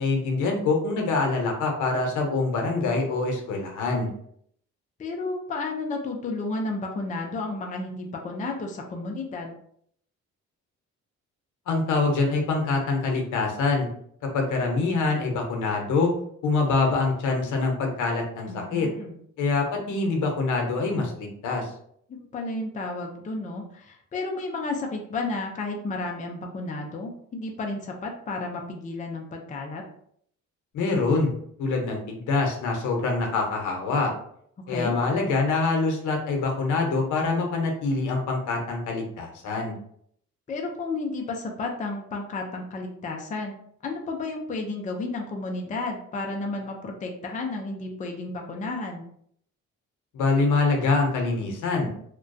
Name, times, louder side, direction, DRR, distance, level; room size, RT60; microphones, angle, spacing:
voice 1, 0.0-4.1 11.7-13.9 14.3-16.1 16.4-18.9 19.4-21.7 30.7-31.3 31.6-34.1 34.7-39.7 50.1-51.9, left 3 dB, 80° left, 2 dB, 0.7 m, -25 dB
voice 2, 5.0-9.6 18.5-19.2 22.3-29.8 34.6-34.9 40.5-49.1, left 3 dB, 25° left, 1 dB, 0.4 m, -32 dB
2.3 x 2.2 x 2.5 m, 0.66 s
cardioid pair, 90°, 30 cm